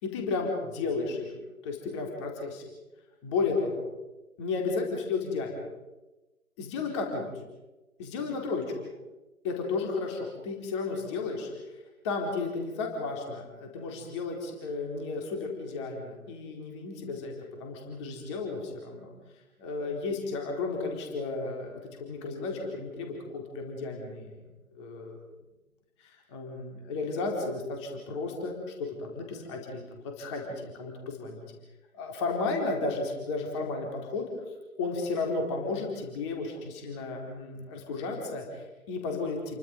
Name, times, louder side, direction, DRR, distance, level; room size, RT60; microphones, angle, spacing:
voice 1, 0.0-1.3 1.6-2.6 3.2-3.8 4.4-5.5 6.6-7.3 8.0-8.6 9.4-11.5 12.0-19.1 19.6-24.4 24.7-25.2 26.0-31.4 31.9-34.2 34.8-39.6, left 3 dB, 20° left, 1 dB, 4.2 m, -33 dB
29.0 x 24.0 x 5.5 m, 1.1 s
figure-of-eight pair, 145°, 43 cm